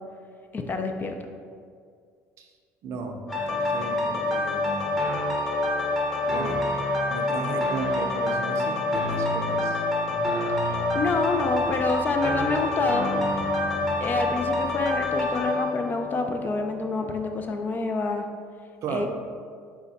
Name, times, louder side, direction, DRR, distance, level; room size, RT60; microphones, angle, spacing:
voice 1, 0.5-1.1 10.6-13.1 14.0-18.3 18.9-19.1, left 3 dB, 30° left, 5 dB, 0.4 m, -28 dB
voice 2, 2.8-5.0 6.3-6.7 7.1-9.8 18.8-19.1, right 4 dB, 55° right, 3 dB, 0.5 m, -35 dB
Worry piano, 3.3-17.0 17.5-17.6, left 2 dB, 5° left, 0.9 m, -27 dB
sound 1, 10.1-15.4, equal, 55° left, 1.4 m, -42 dB
4.6 x 2.2 x 4.1 m, 2.1 s
supercardioid pair, 105°, 6 cm